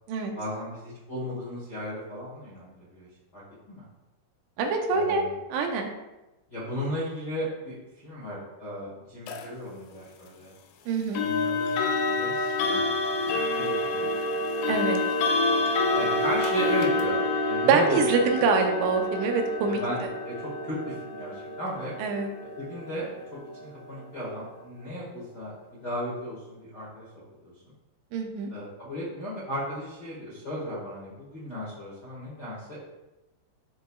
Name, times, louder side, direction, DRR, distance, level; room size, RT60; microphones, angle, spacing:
voice 1, 0.3-3.1 3.3-3.4 3.7-3.8 4.9-5.3 6.5-7.7 8.0-10.5 11.2-11.7 12.1-13.0 13.2-14.1 15.9-18.2 19.6-20.0 20.2-21.9 22.6-27.0 27.4-27.7 28.5-32.8, equal, 60° left, -8 dB, 1.0 m, -35 dB
voice 2, 4.6-5.9 10.9-11.2 14.7-15.0 17.7-20.1 22.0-22.3 28.1-28.5, right 4 dB, 85° right, 3 dB, 3.4 m, -25 dB
sound 1, 9.3-9.5 11.2-24.0, left 2 dB, 85° left, 2.8 m, -28 dB
12.5 x 4.8 x 2.4 m, 1.0 s
omnidirectional pair, 5.4 m